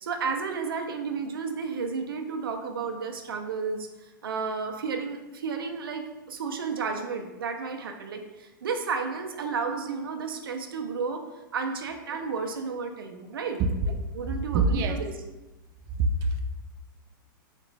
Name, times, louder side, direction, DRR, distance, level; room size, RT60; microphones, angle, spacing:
voice 1, 0.0-11.2 11.5-13.6 14.1-15.1, right 5 dB, 85° right, 5 dB, 0.5 m, -32 dB
voice 2, 13.6-14.0 14.5-15.0 16.0-16.4, right 3 dB, 35° right, 5 dB, 0.3 m, -25 dB
4.0 x 2.5 x 3.2 m, 1.1 s
hypercardioid pair, 125°, 11 cm